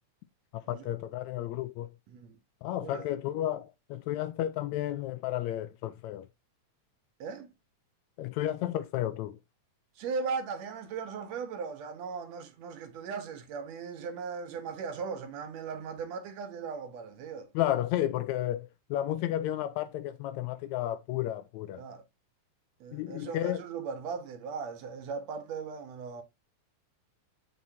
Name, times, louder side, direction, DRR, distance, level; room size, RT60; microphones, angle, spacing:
voice 1, 0.5-1.9 2.6-6.3 8.2-9.4 17.5-21.8 22.9-23.6, left 13 dB, 80° left, 1.8 m, -32 dB
voice 2, 2.8-3.1 7.2-7.5 10.0-17.5 21.8-22.0 22.8-26.2, right 5 dB, 70° right, 2.0 m, -38 dB
7.2 x 6.0 x 2.7 m
omnidirectional pair, 3.5 m